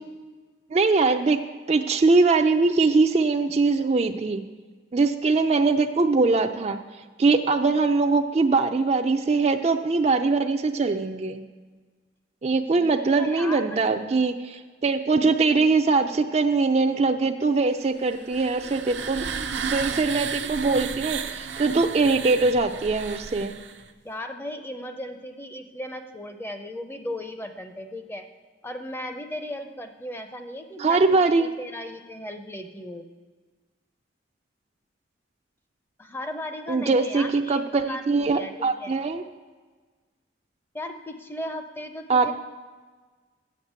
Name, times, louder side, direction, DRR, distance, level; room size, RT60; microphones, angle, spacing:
voice 1, 0.7-1.4 1.7-4.4 4.9-6.8 7.2-11.4 12.4-19.3 19.7-23.5 30.8-31.5 36.7-39.2 42.1-42.3, right 3 dB, 35° right, 7 dB, 0.4 m, -22 dB
voice 2, 12.8-14.0 24.0-28.3 28.6-33.1 36.0-39.0 40.7-42.3, left 1 dB, 10° left, 6 dB, 0.6 m, -36 dB
sound 1, 18.1-23.9, right 6 dB, 80° right, 0.6 m, -33 dB
7.2 x 6.6 x 8.0 m, 1.4 s
head